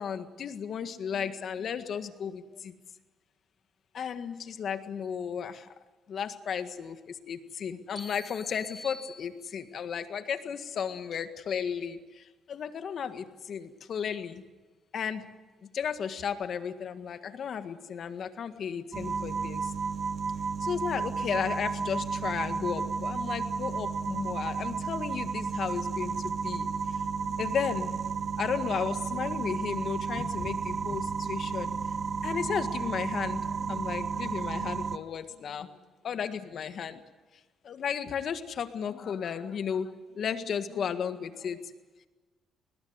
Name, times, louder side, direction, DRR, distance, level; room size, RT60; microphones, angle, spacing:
voice 1, 0.0-2.7 3.9-5.7 6.1-14.4 14.9-15.3 15.7-19.7 20.6-28.0 28.4-31.7 32.2-35.7 36.0-37.0 37.6-41.6, left 7 dB, 60° left, 9 dB, 1.8 m, -34 dB
sound 1, 8.0-9.9, left 1 dB, 5° right, 2.1 m, -47 dB
sound 2, 18.9-35.0, right 5 dB, 40° right, 1.2 m, -32 dB
21.5 x 20.0 x 9.6 m, 1.2 s
cardioid pair, 90°, 0 cm